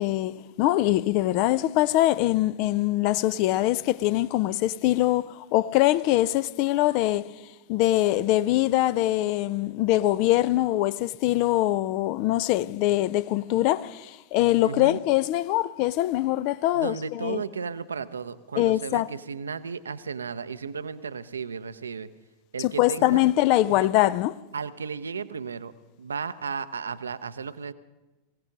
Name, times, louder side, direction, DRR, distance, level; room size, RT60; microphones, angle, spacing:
voice 1, 0.0-7.4 7.7-17.4 18.6-19.1 22.6-24.4, left 15 dB, 45° left, 0.4 m, -23 dB
voice 2, 14.6-15.0 16.7-22.1 22.5-23.2 24.5-25.7 26.0-27.7, right 5 dB, 70° right, 0.6 m, -34 dB
23.5 x 16.5 x 3.8 m
figure-of-eight pair, 90°, 0 cm